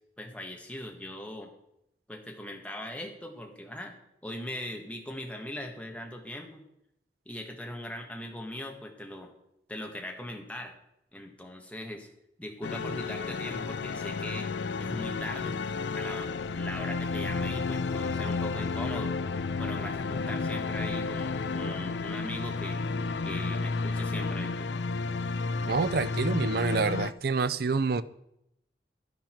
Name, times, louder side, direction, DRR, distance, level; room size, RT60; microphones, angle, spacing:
voice 1, 0.2-1.5 2.1-6.6 7.2-9.3 9.7-10.7 11.1-12.1 12.4-14.5 14.8-15.6 15.9-19.2 19.6-22.8 23.2-24.7, left 1 dB, 10° left, 1.5 m, -40 dB
sound 1, 12.6-27.1, left 4 dB, 80° left, 0.5 m, -32 dB
voice 2, 25.6-28.0, right 4 dB, 60° right, 0.5 m, -27 dB
11.0 x 10.5 x 4.5 m
head